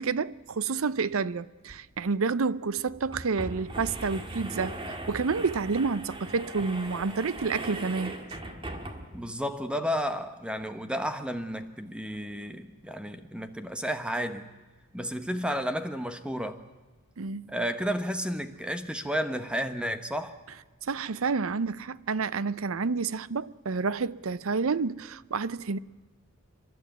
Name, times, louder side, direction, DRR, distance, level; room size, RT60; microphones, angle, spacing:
voice 1, 0.0-8.2 17.2-17.5 20.9-25.8, right 4 dB, 70° right, 0.6 m, -29 dB
sound 1, 1.7-1.8 2.1-2.2 2.9-9.3, right 1 dB, 25° right, 1.9 m, -39 dB
voice 2, 9.1-14.5 14.9-16.6 17.5-20.4, equal, 5° right, 1.1 m, -32 dB
30.0 x 12.5 x 9.2 m
head